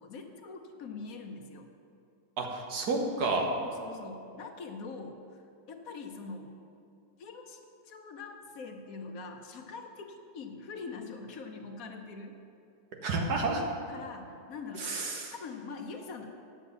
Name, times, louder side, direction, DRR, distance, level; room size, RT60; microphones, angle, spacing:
voice 1, 0.0-1.7 3.6-5.4 5.7-6.5 7.2-12.3 13.9-15.0 15.3-16.3, left 4 dB, 60° left, 4 dB, 1.2 m, -43 dB
voice 2, 2.4-3.5 13.0-13.6 14.8-15.3, right 3 dB, 60° right, 2 dB, 1.7 m, -30 dB
9.8 x 7.4 x 6.8 m, 2.6 s
omnidirectional pair, 1.9 m